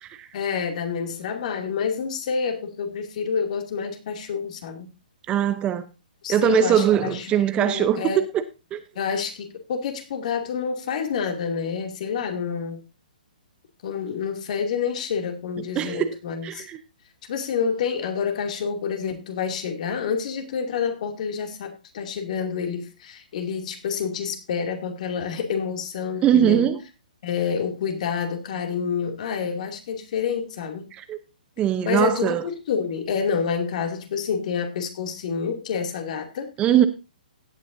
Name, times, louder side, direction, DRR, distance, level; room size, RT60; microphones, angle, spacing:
voice 1, 0.3-4.9 6.2-8.2 8.9-12.8 13.8-16.7 17.3-26.6 27.2-30.9 31.8-36.5, left 6 dB, 55° left, 2.6 m, -28 dB
voice 2, 5.3-5.8 6.3-8.4 8.7-8.8 15.8-16.1 16.4-16.8 26.2-26.8 31.1-31.2 31.6-32.4 36.6-36.9, right 10 dB, 20° right, 0.7 m, -21 dB
16.5 x 9.1 x 2.7 m
hypercardioid pair, 140°, 5 cm